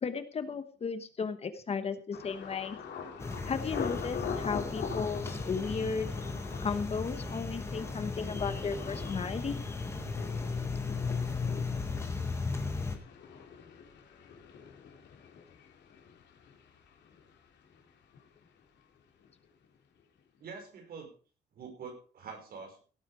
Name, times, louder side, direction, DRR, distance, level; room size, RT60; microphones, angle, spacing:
voice 1, 0.0-2.8 3.4-6.1 6.6-9.6 11.1-11.2, left 5 dB, 35° left, 10 dB, 1.1 m, -35 dB
Thunder, 2.1-17.9 18.1-18.8 19.2-19.5, left 6 dB, 85° left, 3.0 m, -44 dB
sound 1, 3.2-13.0, left 4 dB, 15° left, 1.9 m, -36 dB
voice 2, 20.4-21.1 21.6-22.8, right 5 dB, 60° right, 3 dB, 5.4 m, -45 dB
17.0 x 8.7 x 4.9 m, 0.39 s
cardioid pair, 160°, 17 cm